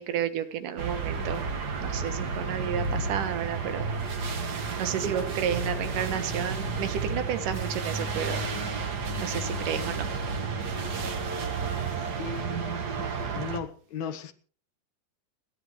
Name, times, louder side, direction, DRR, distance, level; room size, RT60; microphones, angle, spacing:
voice 1, 0.0-1.4 1.8-3.9 4.8-8.4 9.2-10.1, right 9 dB, 90° right, 2.8 m, -31 dB
sound 1, 0.8-13.6, right 4 dB, 45° right, 1.5 m, -31 dB
sound 2, 5.0-9.4, right 6 dB, 65° right, 4.0 m, -42 dB
voice 2, 12.2-12.5 13.3-14.3, left 5 dB, 70° left, 2.2 m, -35 dB
29.5 x 10.5 x 3.2 m
omnidirectional pair, 3.6 m